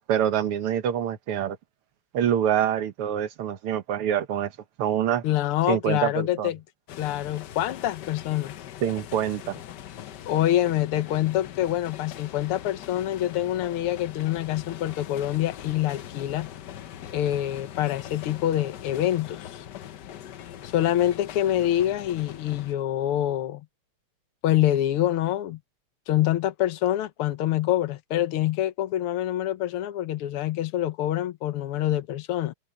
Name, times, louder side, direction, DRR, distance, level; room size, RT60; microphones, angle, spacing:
voice 1, 0.1-1.6 2.1-4.5 4.8-5.2 5.7-6.5 8.8-9.6, right 10 dB, 85° right, 2.1 m, -25 dB
voice 2, 5.2-6.6 7.0-8.6 10.3-16.5 17.1-19.6 20.6-23.6 24.4-25.6 26.1-32.5, left 13 dB, 85° left, 1.8 m, -26 dB
sound 1, 6.9-22.7, left 11 dB, 65° left, 1.2 m, -41 dB
omnidirectional pair, 2.4 m